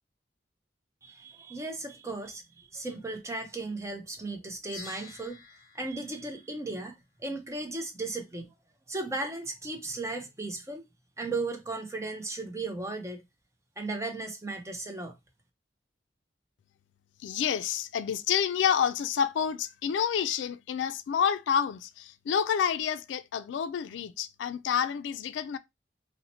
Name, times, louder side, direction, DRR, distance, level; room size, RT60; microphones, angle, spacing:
voice 1, 1.0-5.4 5.7-8.5 8.9-10.9 11.2-13.2 13.8-15.2, right 2 dB, 15° right, 0.5 m, -36 dB
sound 1, 4.7-7.2, left 3 dB, 45° left, 0.8 m, -49 dB
voice 2, 17.2-25.6, left 8 dB, 90° left, 0.3 m, -29 dB
2.8 x 2.1 x 4.1 m
head